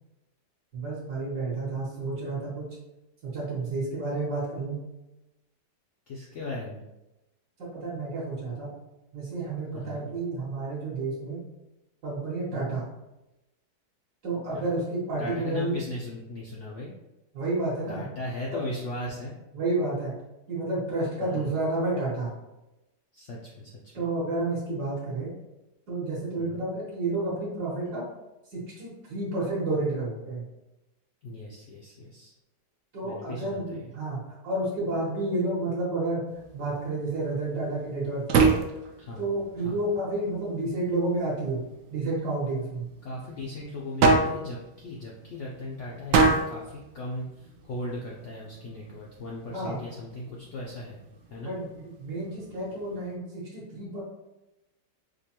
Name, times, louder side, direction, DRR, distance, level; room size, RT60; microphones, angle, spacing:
voice 1, 0.7-2.7 3.2-4.8 7.6-8.7 9.1-11.4 12.0-12.9 14.2-15.8 17.3-18.0 18.5-18.6 19.5-20.1 20.5-22.3 23.9-25.3 25.9-28.0 28.5-30.5 32.9-36.2 36.5-38.5 39.2-41.6 41.9-42.9 49.5-49.8 51.4-54.0, right 2 dB, 65° right, -7 dB, 1.6 m, -30 dB
voice 2, 6.1-6.8 9.7-10.1 12.5-12.7 14.5-14.9 15.2-16.9 17.9-19.3 21.2-21.5 23.1-24.1 26.4-26.7 31.2-32.3 33.0-33.9 39.0-39.3 39.6-39.8 43.0-51.0 51.3-51.6, left 2 dB, 85° left, -3 dB, 0.6 m, -38 dB
sound 1, 36.3-53.2, right 4 dB, 80° right, 0.7 m, -30 dB
5.0 x 2.2 x 2.8 m, 0.96 s
omnidirectional pair, 1.9 m